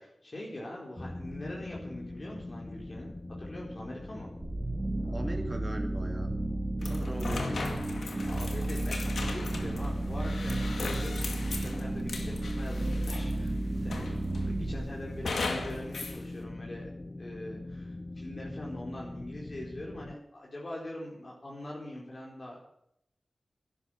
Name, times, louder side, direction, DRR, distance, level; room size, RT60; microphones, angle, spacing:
voice 1, 0.0-4.3 8.3-22.6, left 1 dB, 50° left, -3 dB, 4.4 m, -43 dB
sound 1, 1.0-20.2, left 2 dB, 25° left, 0.8 m, -43 dB
sound 2, 4.4-16.2, right 2 dB, 45° right, 2.5 m, -33 dB
voice 2, 5.1-6.3 6.8-7.7, right 1 dB, 25° right, 3 dB, 2.3 m, -39 dB
sound 3, 6.8-13.5 13.9-14.5 15.2-16.2, left 3 dB, 85° left, 2.2 m, -38 dB
11.5 x 11.0 x 9.1 m, 0.75 s
cardioid pair, 40°, 0 cm